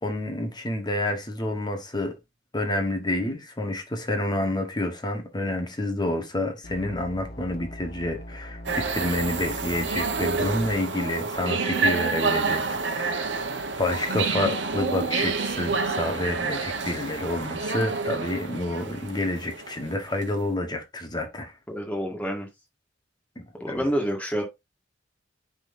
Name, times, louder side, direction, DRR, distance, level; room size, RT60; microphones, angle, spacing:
voice 1, 0.0-2.2 2.5-13.4 13.8-21.5 23.4-23.9, left 1 dB, 25° left, 1.2 m, -29 dB
sound 1, 6.6-10.7, left 1 dB, 50° left, 0.9 m, -41 dB
sound 2, 8.7-20.2, right 4 dB, 75° right, 1.0 m, -28 dB
voice 2, 21.7-22.5 23.6-24.4, equal, 10° left, 1.8 m, -28 dB
9.7 x 3.9 x 2.6 m
head